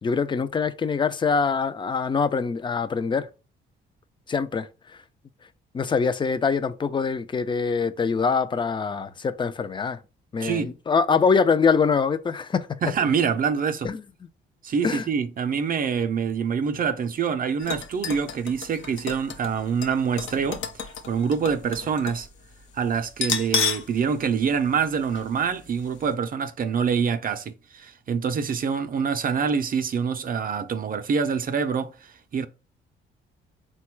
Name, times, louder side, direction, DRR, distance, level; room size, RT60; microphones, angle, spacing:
voice 1, 0.0-3.3 4.3-4.7 5.7-10.0 10.3-12.8 13.8-14.0 14.8-15.0, left 5 dB, 25° left, 0.4 m, -24 dB
voice 2, 10.4-10.7 12.8-13.9 14.6-22.3 22.7-32.5, right 6 dB, 45° right, 0.5 m, -26 dB
sound 1, 17.6-22.3 22.5-22.6 23.1-23.9 24.3-24.4 25.2-25.3 25.7-25.8, left 6 dB, 80° left, 0.7 m, -31 dB
4.0 x 2.3 x 4.4 m
cardioid pair, 90°, 20 cm